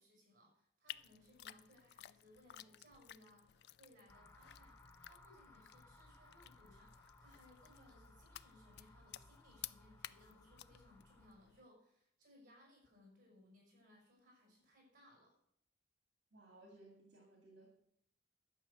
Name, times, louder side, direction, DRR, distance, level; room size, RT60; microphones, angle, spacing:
voice 1, 0.0-4.8 5.0-15.4, left 1 dB, 45° right, -1 dB, 5.8 m, -66 dB
sound 1, 0.9-11.7, left 12 dB, 60° left, 0.3 m, -56 dB
sound 2, 4.1-11.3, left 2 dB, 15° left, 0.7 m, -63 dB
voice 2, 16.3-17.7, right 2 dB, 65° right, 0 dB, 2.3 m, -61 dB
11.5 x 5.7 x 8.3 m, 0.73 s
head